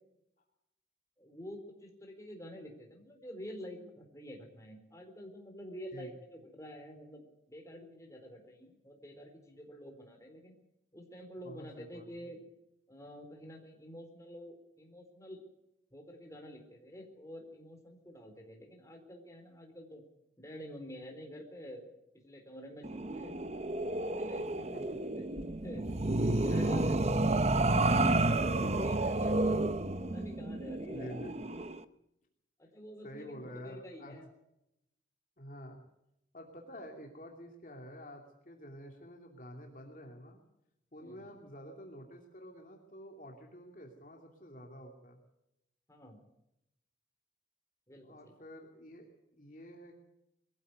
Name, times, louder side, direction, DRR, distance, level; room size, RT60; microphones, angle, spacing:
voice 1, 1.2-10.5 10.9-12.4 12.9-15.4 15.9-20.0 20.4-21.9 22.2-23.4 24.1-24.7 25.1-25.3 25.6-27.1 27.7-29.6 30.0-31.2 32.6-34.3 41.0-41.3 45.9-46.2 47.9-48.3, equal, 15° left, 3 dB, 4.2 m, -48 dB
voice 2, 11.4-12.1 24.7-25.0 26.5-26.7 29.0-29.3 30.9-31.3 33.0-34.1 35.4-35.8 36.3-40.4 40.9-45.2 48.0-50.0, equal, 45° left, 1 dB, 2.8 m, -49 dB
sound 1, 22.8-31.8, right 2 dB, 35° right, 0.8 m, -31 dB
22.0 x 15.0 x 8.0 m, 0.83 s
head